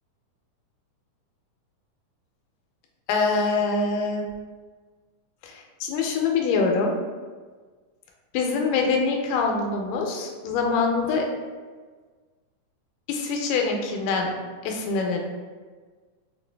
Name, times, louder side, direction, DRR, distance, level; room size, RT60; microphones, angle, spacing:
voice 1, 3.1-4.2 5.4-6.9 8.3-11.3 13.1-14.3 14.7-15.2, left 4 dB, 90° left, 1 dB, 2.2 m, -24 dB
5.9 x 2.4 x 2.2 m, 1.4 s
omnidirectional pair, 3.7 m